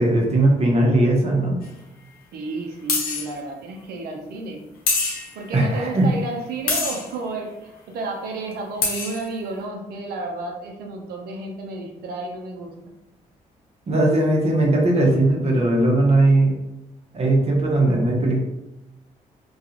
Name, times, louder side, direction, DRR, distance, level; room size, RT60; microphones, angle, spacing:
voice 1, 0.0-1.6 5.5-6.1 13.9-16.6 17.1-18.4, right 2 dB, 45° right, -1 dB, 0.8 m, -18 dB
sound 1, 1.6-1.7 2.9-3.3 4.9-5.4 6.7-7.1 8.5-8.6 8.8-9.3, left 4 dB, 75° left, 0.7 m, -24 dB
voice 2, 2.3-4.6 5.3-12.9, right 2 dB, 80° right, 1 dB, 0.6 m, -32 dB
2.4 x 2.3 x 2.8 m, 0.93 s
supercardioid pair, 70°, 16 cm